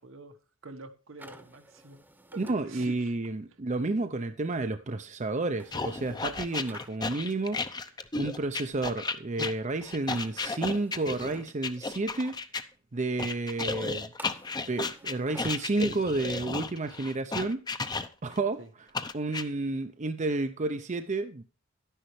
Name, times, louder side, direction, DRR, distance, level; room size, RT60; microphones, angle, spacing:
voice 1, 0.0-2.0 2.3-3.1 18.6-18.7, right 3 dB, 70° right, 1.3 m, -47 dB
sound 1, 1.2-2.6 5.6-6.9 10.0-11.4 14.2-15.7, right 2 dB, 10° right, 1.0 m, -50 dB
voice 2, 2.4-7.9 8.2-12.4 12.9-14.1 14.7-17.6 18.2-18.6 19.1-21.4, right 2 dB, 35° right, 0.6 m, -31 dB
sound 2, 5.7-12.6 13.2-18.4 18.9-19.4, left 4 dB, 20° left, 0.7 m, -34 dB
11.5 x 10.0 x 3.2 m
head